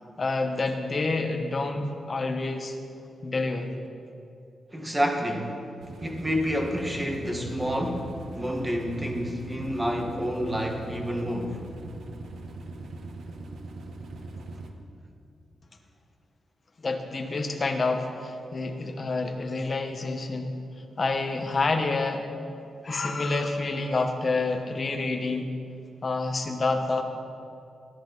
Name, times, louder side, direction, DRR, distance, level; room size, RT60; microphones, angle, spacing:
voice 1, 0.2-2.8 3.2-3.7 16.8-20.5 21.0-22.2 22.8-25.5 26.0-27.0, left 3 dB, 35° left, 4 dB, 1.2 m, -28 dB
voice 2, 4.7-5.6 6.0-11.6, equal, 10° right, 2 dB, 1.4 m, -29 dB
sound 1, 5.8-14.7, right 2 dB, 70° right, 1.2 m, -41 dB
19.0 x 11.0 x 4.0 m, 2.6 s
wide cardioid pair, 145°, 0 cm